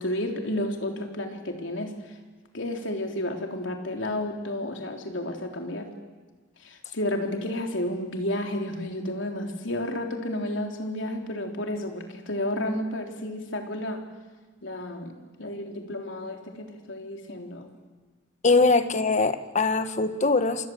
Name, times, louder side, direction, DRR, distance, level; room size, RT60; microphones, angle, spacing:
voice 1, 0.0-1.9 2.5-5.9 6.6-14.0 14.6-15.1 15.4-17.7, left 1 dB, 75° left, 3 dB, 3.7 m, -31 dB
voice 2, 18.4-20.7, left 3 dB, 40° left, 10 dB, 1.5 m, -22 dB
27.0 x 26.5 x 8.0 m, 1.3 s
head